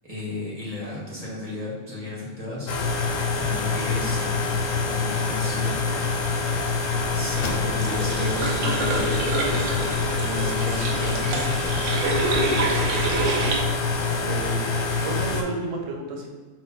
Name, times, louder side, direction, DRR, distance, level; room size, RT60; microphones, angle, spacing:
voice 1, 0.0-2.7 3.4-4.6 4.9-5.8 7.1-9.8 10.1-12.0, left 2 dB, 30° right, -6 dB, 1.3 m, -34 dB
sound 1, 2.7-15.4, left 4 dB, 90° left, 1.0 m, -25 dB
sound 2, 7.0-13.6, right 3 dB, 75° right, 0.9 m, -27 dB
sound 3, 7.4-8.2 8.7-8.8 9.3-10.2, left 3 dB, 60° left, 0.6 m, -36 dB
voice 2, 14.0-16.3, right 3 dB, 50° right, 1 dB, 0.4 m, -32 dB
4.7 x 2.1 x 4.1 m, 1.4 s
omnidirectional pair, 1.3 m